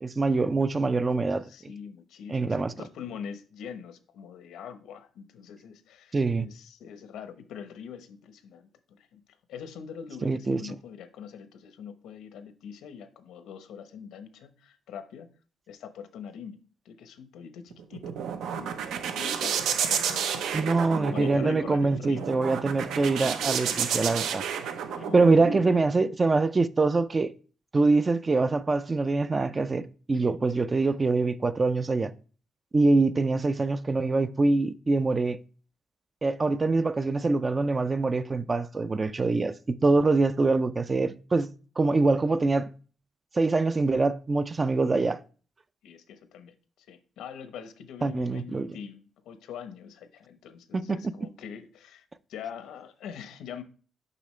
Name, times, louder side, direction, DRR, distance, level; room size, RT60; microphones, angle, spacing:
voice 1, 0.0-1.4 2.3-2.7 6.1-6.5 10.2-10.7 20.5-24.4 25.1-27.3 27.7-32.1 32.7-35.4 36.2-41.5 41.8-42.7 43.3-45.2 48.0-48.7 50.7-51.0, right 3 dB, 20° right, 0.3 m, -24 dB
voice 2, 1.5-9.2 9.5-15.3 15.7-18.2 18.5-22.3 24.9-25.8 45.8-53.6, left 7 dB, 85° left, 0.9 m, -43 dB
sound 1, 17.7-25.6, right 7 dB, 85° right, 0.8 m, -31 dB
6.8 x 5.6 x 3.2 m
cardioid pair, 155°, 0 cm